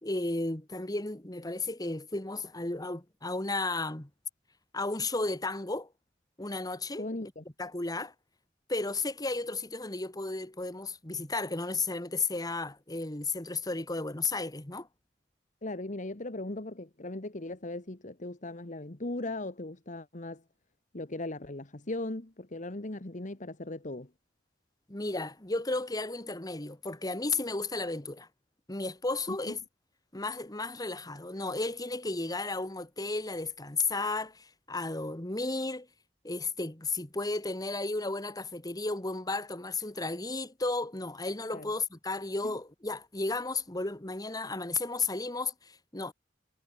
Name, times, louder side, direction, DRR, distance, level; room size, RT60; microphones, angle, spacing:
voice 1, 0.0-4.1 4.7-5.9 6.4-7.1 7.6-8.1 8.7-14.9 24.9-28.3 28.7-29.6 30.1-35.9 36.2-46.1, left 3 dB, 20° left, 1.9 m, -33 dB
voice 2, 7.0-7.4 15.6-20.4 20.9-24.1 29.3-29.6 41.5-41.7 42.4-42.5, left 2 dB, 45° left, 1.6 m, -38 dB
head